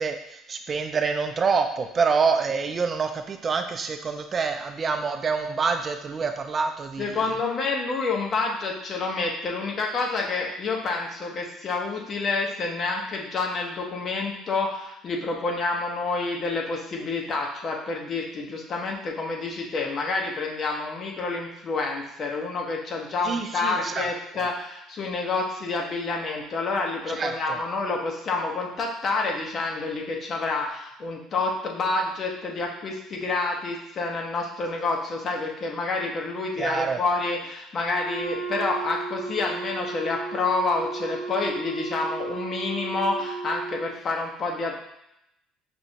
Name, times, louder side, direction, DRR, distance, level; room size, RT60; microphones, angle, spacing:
voice 1, 0.0-7.2 23.2-24.1 27.1-27.6 36.6-37.0, right 5 dB, 40° right, 6 dB, 0.4 m, -26 dB
voice 2, 7.0-44.8, left 3 dB, 45° left, 0 dB, 0.9 m, -28 dB
Wind instrument woodwind instrument, 37.8-44.0, right 4 dB, 80° right, 1.0 m, -34 dB
6.0 x 2.1 x 2.8 m, 0.81 s
hypercardioid pair, 70°, 0 cm